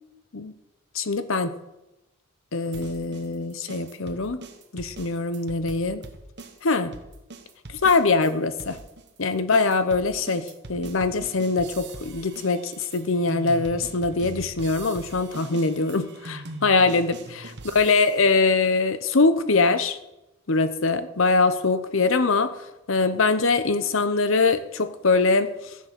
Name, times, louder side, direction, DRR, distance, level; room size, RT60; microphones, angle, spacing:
voice 1, 0.9-1.6 2.5-4.4 4.7-6.0 6.6-6.9 7.8-8.8 9.2-17.4 17.7-20.0 20.5-22.5 22.9-25.5, left 3 dB, 65° left, 12 dB, 0.8 m, -23 dB
sound 1, 2.7-8.3 8.6-18.3, right 2 dB, 50° right, 1.3 m, -42 dB
14.5 x 7.6 x 6.0 m, 0.95 s
head